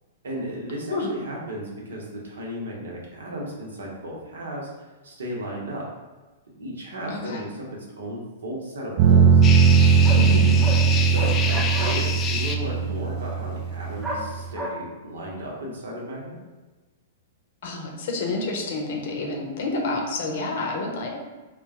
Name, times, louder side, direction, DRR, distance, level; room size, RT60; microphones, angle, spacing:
voice 1, 0.2-5.9 6.6-9.4 11.0-16.4, equal, 75° right, -2 dB, 0.9 m, -35 dB
voice 2, 7.1-7.4 10.2-10.6 17.6-21.1, left 2 dB, 60° left, 1 dB, 0.7 m, -28 dB
sound 1, 9.0-14.5, right 6 dB, 45° right, 0.4 m, -19 dB
sound 2, 9.4-12.5, left 5 dB, 25° left, 0.3 m, -28 dB
sound 3, 9.6-9.7 10.0-10.2 10.6-10.8 11.2-12.0 14.0-14.2 14.6-14.7, right 1 dB, 5° right, 0.6 m, -31 dB
3.2 x 2.3 x 3.6 m, 1.2 s
figure-of-eight pair, 105°, 0 cm